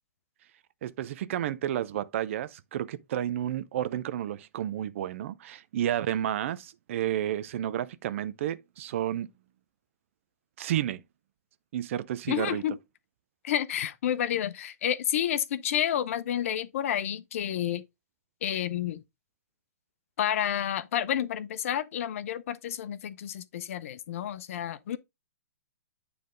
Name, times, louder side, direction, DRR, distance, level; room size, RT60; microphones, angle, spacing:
voice 1, 0.8-9.3 10.6-11.0 11.7-12.6, right 11 dB, 50° right, 0.5 m, -31 dB
voice 2, 12.3-12.8 13.4-17.8 18.4-19.0 20.2-25.0, left 10 dB, 55° left, 0.7 m, -30 dB
9.4 x 3.4 x 3.8 m
figure-of-eight pair, 125°, 9 cm